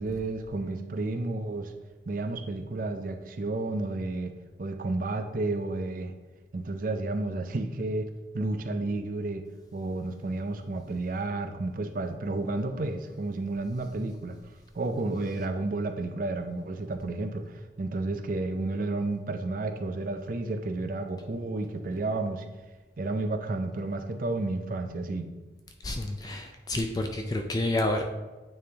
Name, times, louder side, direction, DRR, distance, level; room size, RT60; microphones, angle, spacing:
voice 1, 0.0-1.7 2.1-4.3 4.6-6.1 6.5-8.1 8.3-9.5 9.7-14.4 14.7-22.4 23.0-25.3, right 2 dB, 45° right, 6 dB, 0.5 m, -31 dB
voice 2, 25.8-28.0, left 1 dB, 20° left, 4 dB, 0.3 m, -29 dB
9.0 x 3.3 x 3.4 m, 1.2 s
head